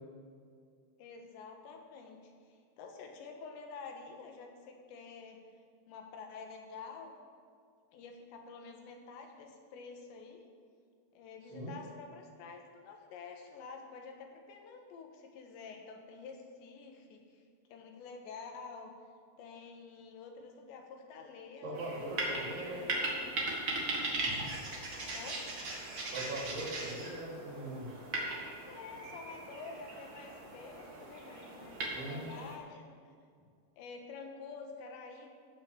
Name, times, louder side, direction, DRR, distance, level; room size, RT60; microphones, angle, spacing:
voice 1, 1.0-5.5 5.9-7.2 7.9-10.5 11.1-17.5 17.7-19.0 19.4-23.4 25.1-25.5 28.7-33.0 33.8-35.3, left 4 dB, 75° left, 3 dB, 3.5 m, -49 dB
voice 2, 21.6-22.8 26.1-27.8 31.9-32.3, right 1 dB, 75° right, -8 dB, 5.7 m, -40 dB
sound 1, 21.7-32.6, right 2 dB, 45° right, 1.7 m, -39 dB
16.0 x 6.3 x 7.2 m, 2.2 s
omnidirectional pair, 5.4 m